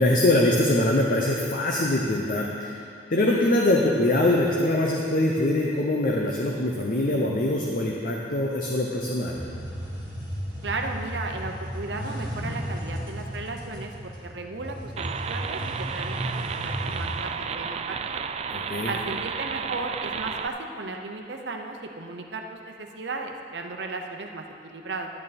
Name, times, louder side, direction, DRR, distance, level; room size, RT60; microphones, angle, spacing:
voice 1, 0.0-2.8 3.1-9.4 18.5-18.9, left 1 dB, 50° left, -1 dB, 0.8 m, -23 dB
sound 1, 9.3-17.3, equal, 25° left, 1.9 m, -34 dB
voice 2, 10.6-18.2 18.8-25.1, right 3 dB, 70° right, 3 dB, 0.8 m, -35 dB
sound 2, 15.0-20.5, right 6 dB, 35° right, 0.3 m, -32 dB
11.0 x 8.9 x 4.2 m, 2.5 s
head